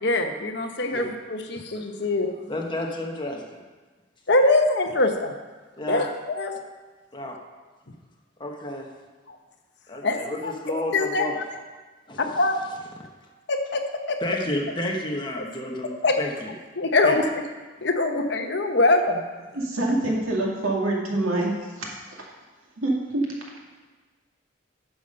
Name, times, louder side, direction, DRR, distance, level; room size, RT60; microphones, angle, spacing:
voice 1, 0.0-2.3 4.3-5.3 5.9-6.5 9.3-9.4 10.0-10.5 10.9-11.4 12.2-12.6 13.5-13.8 14.1-14.2 15.4-15.5 16.0-16.1 16.8-17.3 17.8-19.2, left 2 dB, 55° left, 5 dB, 1.0 m, -23 dB
voice 2, 2.5-3.6 5.8-6.1 7.1-7.4 8.4-8.9 9.9-11.4 12.1-12.4 14.2-16.5 17.0-17.2, left 1 dB, 20° left, 0 dB, 1.2 m, -31 dB
voice 3, 19.5-22.2 22.8-23.3, right 2 dB, 85° right, -2 dB, 2.4 m, -26 dB
10.5 x 7.0 x 5.4 m, 1.3 s
head